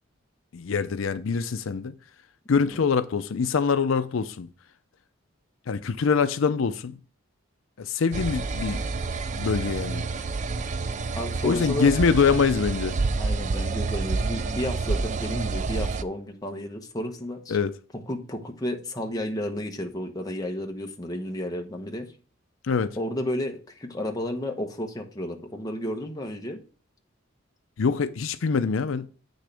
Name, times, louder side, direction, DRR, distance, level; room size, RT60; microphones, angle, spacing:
voice 1, 0.5-1.9 2.5-4.5 5.7-7.0 7.8-8.8 9.4-10.0 11.4-13.0 17.5-17.7 22.6-23.0 27.8-29.1, left 5 dB, 75° left, 0.5 m, -24 dB
sound 1, 8.1-16.0, right 3 dB, 35° right, 0.4 m, -28 dB
voice 2, 11.1-11.9 13.2-17.6 18.1-22.1 23.0-26.6, left 1 dB, 20° left, 1.0 m, -32 dB
8.4 x 6.4 x 3.4 m
head